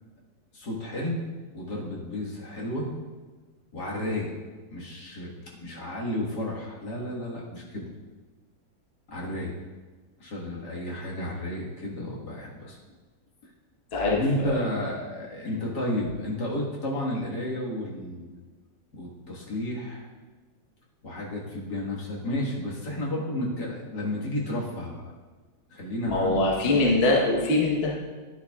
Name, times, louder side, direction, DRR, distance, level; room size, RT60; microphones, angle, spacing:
voice 1, 0.5-1.3 1.5-2.9 3.7-4.3 4.7-5.3 5.6-7.8 9.1-9.5 10.2-12.8 14.1-18.3 18.9-20.1 21.0-25.0 25.7-27.0, left 1 dB, 65° left, -4 dB, 2.2 m, -32 dB
voice 2, 26.0-28.0, left 2 dB, 40° left, -2 dB, 1.2 m, -23 dB
11.0 x 10.0 x 2.4 m, 1.4 s
omnidirectional pair, 2.0 m